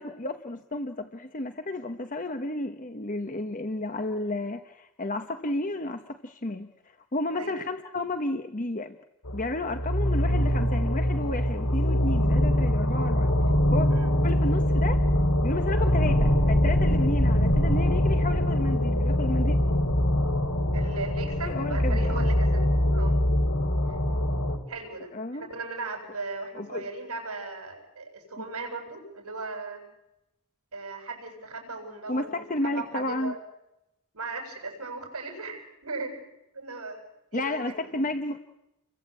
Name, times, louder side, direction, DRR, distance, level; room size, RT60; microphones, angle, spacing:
voice 1, 0.0-6.7 7.1-9.0 9.3-13.3 13.7-13.9 14.2-15.0 15.4-19.6 21.5-22.1 25.1-25.5 26.6-26.9 32.1-33.3 37.3-38.4, left 2 dB, 35° left, 8 dB, 1.1 m, -32 dB
sound 1, 9.2-24.6, equal, 80° left, 3.4 m, -23 dB
voice 2, 20.7-23.2 23.9-24.0 24.7-29.8 30.7-33.4 34.1-36.2 36.5-37.7, right 3 dB, 80° right, 5 dB, 7.8 m, -37 dB
30.0 x 23.0 x 8.4 m, 0.90 s
head